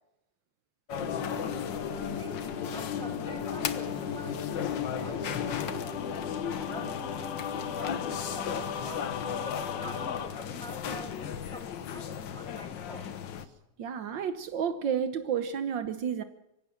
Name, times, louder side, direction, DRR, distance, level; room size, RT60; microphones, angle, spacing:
sound 1, 0.9-13.5, left 8 dB, 60° left, 1.2 m, -36 dB
sound 2, 1.0-10.3, left 7 dB, 85° left, 3.2 m, -36 dB
voice 1, 2.1-6.0 6.7-13.1, right 2 dB, 5° left, 6 dB, 0.8 m, -47 dB
voice 2, 13.8-16.2, right 7 dB, 85° right, 11 dB, 1.0 m, -31 dB
25.0 x 16.5 x 7.5 m, 0.86 s
omnidirectional pair, 3.5 m